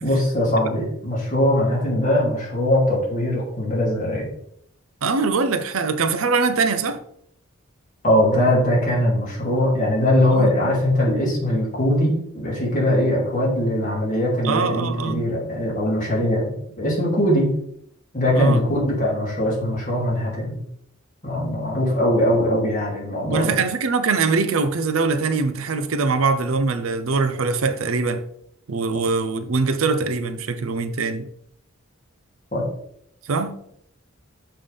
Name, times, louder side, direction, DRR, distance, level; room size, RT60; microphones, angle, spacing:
voice 1, 0.0-4.3 8.0-17.5 18.1-20.6 21.2-23.5 32.5-32.6, left 1 dB, 40° left, -4 dB, 2.7 m, -21 dB
voice 2, 5.0-7.0 10.3-10.8 14.4-15.2 18.3-18.6 23.3-28.3 28.7-31.3 33.3-33.6, right 4 dB, 75° right, 10 dB, 0.6 m, -22 dB
6.9 x 5.6 x 3.4 m, 0.70 s
head